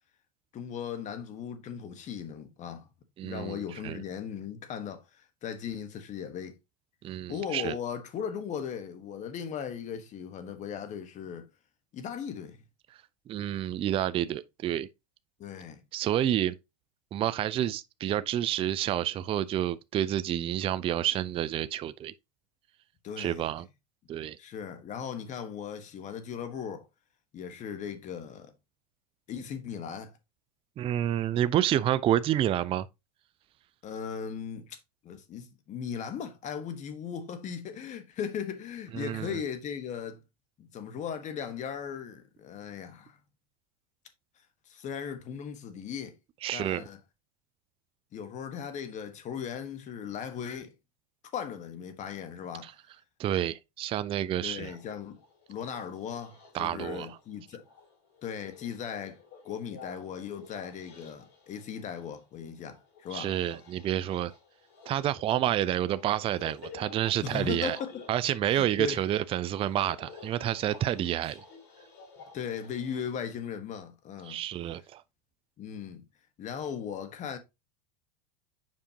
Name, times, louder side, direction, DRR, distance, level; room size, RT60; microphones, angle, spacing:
voice 1, 0.5-2.9 3.2-6.6 7.3-11.5 11.9-12.6 15.4-15.8 23.0-23.4 24.4-26.9 27.3-28.5 29.3-30.2 33.8-34.8 35.0-40.2 40.6-43.2 44.7-46.2 46.5-47.0 48.1-50.7 51.3-52.7 54.4-55.2 55.5-57.6 58.2-59.2 59.4-63.3 67.2-68.0 68.5-69.0 72.3-74.4 75.6-76.0 76.4-77.4, left 7 dB, 35° left, 1.4 m, -38 dB
voice 2, 3.2-4.0 7.0-7.7 13.3-14.9 15.9-16.6 17.1-22.1 23.2-23.7 24.1-24.4 30.8-32.9 38.9-39.4 46.4-46.8 52.6-52.7 53.2-54.7 56.5-57.1 63.1-64.3 64.9-67.8 68.1-71.4 74.3-75.0, right 11 dB, 30° right, 0.4 m, -29 dB
sound 1, 54.5-73.1, left 5 dB, 60° left, 4.5 m, -52 dB
7.4 x 5.1 x 2.9 m
hypercardioid pair, 105°, 20 cm